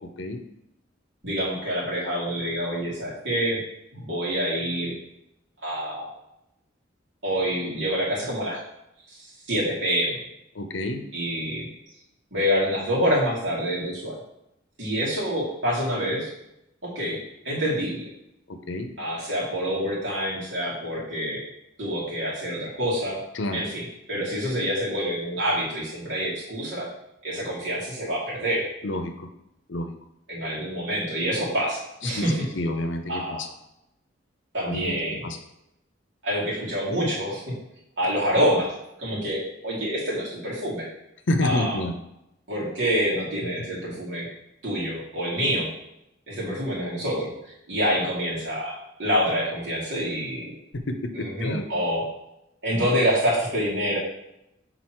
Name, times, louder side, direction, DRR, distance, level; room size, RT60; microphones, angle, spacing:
voice 1, 1.2-3.6 3.9-4.9 5.6-6.1 7.2-8.6 9.1-10.2 11.1-11.7 12.3-14.2 14.8-16.3 16.8-17.2 17.4-18.1 19.0-21.4 21.8-23.2 23.5-26.9 27.2-28.7 30.3-32.4 33.1-33.4 34.5-35.3 36.2-37.4 38.0-38.7 39.0-40.9 41.4-41.8 42.5-44.3 44.6-45.7 46.3-47.3 47.7-50.5 51.1-52.1 52.6-54.0, equal, 65° right, -6 dB, 2.5 m, -26 dB
voice 2, 10.5-11.0 18.5-18.9 23.3-23.6 28.8-29.3 29.7-29.9 32.1-32.2 32.5-33.5 34.6-35.0 35.2-35.4 41.3-41.9 50.9-51.6, left 1 dB, 70° left, 6 dB, 0.7 m, -28 dB
6.1 x 4.0 x 4.5 m, 0.84 s
head